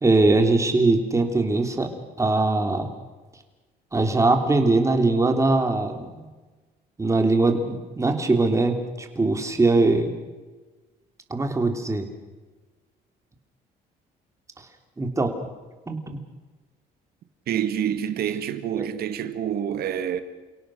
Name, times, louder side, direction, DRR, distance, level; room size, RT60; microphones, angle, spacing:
voice 1, 0.0-1.9 2.2-2.9 3.9-6.3 7.0-10.1 11.3-12.1 15.0-15.3 15.9-16.0 18.8-18.9, right 2 dB, 15° right, 3.4 m, -21 dB
voice 2, 17.5-20.2, right 9 dB, 65° right, 2.0 m, -27 dB
29.5 x 17.5 x 6.5 m
cardioid pair, 110°, 17 cm